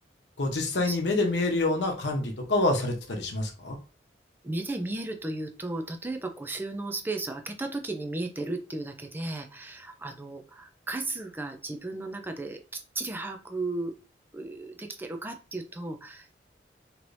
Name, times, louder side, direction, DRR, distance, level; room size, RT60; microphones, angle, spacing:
voice 1, 0.4-3.8, left 2 dB, 85° left, 2 dB, 0.9 m, -27 dB
voice 2, 4.4-12.6 12.9-13.9 14.3-16.3, right 2 dB, 10° right, 5 dB, 0.4 m, -35 dB
3.2 x 3.0 x 2.6 m, 0.33 s
head